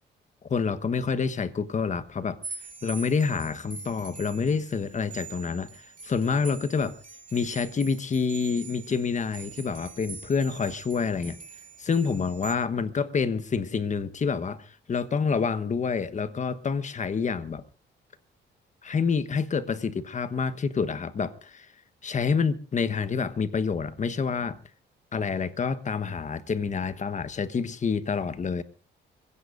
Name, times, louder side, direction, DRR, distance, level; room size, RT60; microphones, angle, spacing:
voice 1, 0.4-2.4 2.8-6.9 7.3-11.4 11.8-17.6 18.8-21.7 22.0-24.6 25.1-28.6, left 5 dB, 40° left, 1.2 m, -28 dB
sound 1, 2.4-12.5, right 5 dB, 40° right, 3.1 m, -44 dB
26.0 x 16.5 x 2.6 m
cardioid pair, 90°, 20 cm